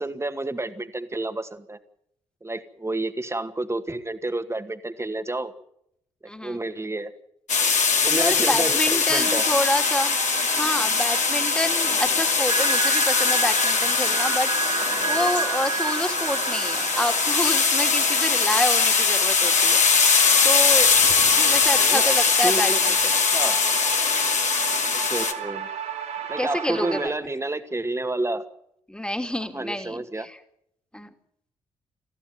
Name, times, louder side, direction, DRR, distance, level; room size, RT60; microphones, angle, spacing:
voice 1, 0.0-1.8 2.4-5.5 6.2-7.1 8.0-9.4 21.8-22.2 22.4-22.8 23.3-23.6 24.9-25.7 26.3-28.5 29.5-30.3, right 2 dB, 15° right, 9 dB, 2.2 m, -30 dB
voice 2, 6.3-6.6 8.1-10.1 10.4-14.5 15.1-19.8 20.4-21.0 21.3-23.1 26.4-27.1 28.9-30.4 30.9-31.1, left 1 dB, 5° left, 6 dB, 2.7 m, -28 dB
sound 1, 7.5-25.3, left 5 dB, 50° left, 2.6 m, -21 dB
sound 2, 9.1-27.1, right 7 dB, 80° right, 3.8 m, -34 dB
sound 3, 12.5-17.6, right 4 dB, 35° right, 3.0 m, -30 dB
21.0 x 15.0 x 9.4 m, 0.73 s
hypercardioid pair, 40°, 16 cm